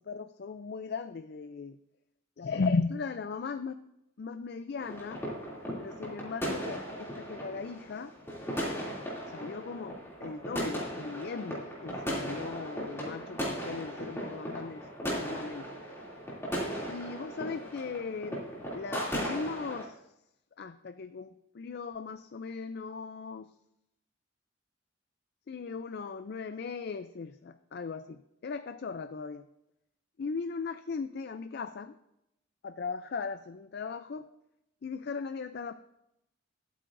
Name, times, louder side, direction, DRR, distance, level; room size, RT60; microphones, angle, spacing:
voice 1, 0.0-1.8 2.4-3.8 4.2-5.2 5.8-8.1 9.3-15.7 16.9-18.4 18.7-20.0 20.6-23.5 25.5-29.5 30.2-32.0 32.6-34.3 34.8-35.7, left 4 dB, 50° left, 10 dB, 0.4 m, -37 dB
sound 1, 4.8-19.8, equal, 10° left, 2.7 m, -37 dB
22.0 x 8.6 x 2.6 m, 0.84 s
head